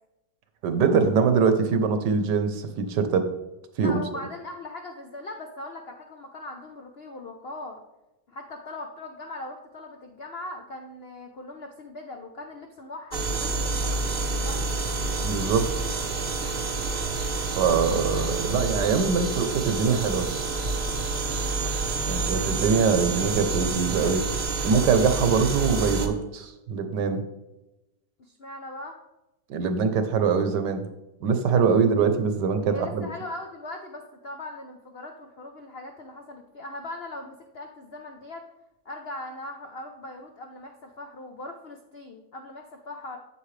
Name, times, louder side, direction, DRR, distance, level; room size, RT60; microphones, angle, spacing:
voice 1, 0.6-3.3 3.8-4.0 15.2-15.7 17.6-20.3 22.1-24.2 24.6-27.2 29.5-30.8 31.2-33.1, right 5 dB, 70° right, 8 dB, 1.4 m, -23 dB
voice 2, 3.8-7.8 8.3-14.6 21.3-21.6 28.2-29.0 32.7-38.4 38.8-43.2, left 2 dB, 70° left, 3 dB, 0.5 m, -40 dB
sound 1, 13.1-26.1, right 3 dB, 45° right, 0.7 m, -28 dB
8.4 x 7.7 x 3.3 m, 0.98 s
omnidirectional pair, 2.0 m